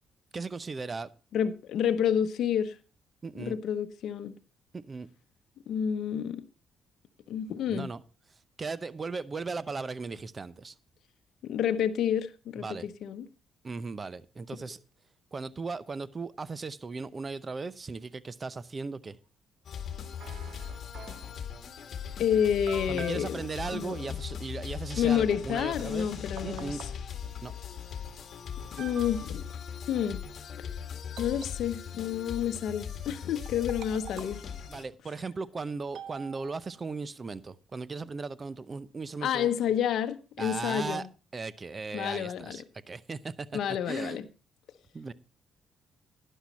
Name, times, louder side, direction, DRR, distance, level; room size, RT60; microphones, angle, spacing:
voice 1, 0.3-1.1 3.2-3.6 4.7-5.1 7.7-8.0 8.6-10.7 12.6-12.9 13.6-14.8 15.3-19.2 22.9-26.1 26.4-26.8 27.4-27.5 34.7-39.5 40.4-41.1 41.3-43.6 43.9-44.2 44.9-45.1, right 4 dB, 35° right, 0.7 m, -37 dB
voice 2, 1.3-2.8 3.4-4.4 5.7-6.4 7.3-7.9 11.4-13.3 22.2-23.4 23.7-24.0 25.0-26.8 28.7-29.4 29.9-30.2 31.2-34.4 39.2-41.1 41.9-42.6 43.5-44.2, left 9 dB, 70° left, 0.8 m, -29 dB
sound 1, 19.6-34.8, left 7 dB, 55° left, 1.8 m, -40 dB
sound 2, 20.2-21.4 22.1-22.2 22.7-23.3 25.8-25.9 26.4-27.0 28.0-28.1 28.7-29.4 31.2-32.0 33.5-34.5 35.9-36.8, right 8 dB, 75° right, 1.0 m, -46 dB
12.0 x 10.0 x 4.2 m
cardioid pair, 90°, 0 cm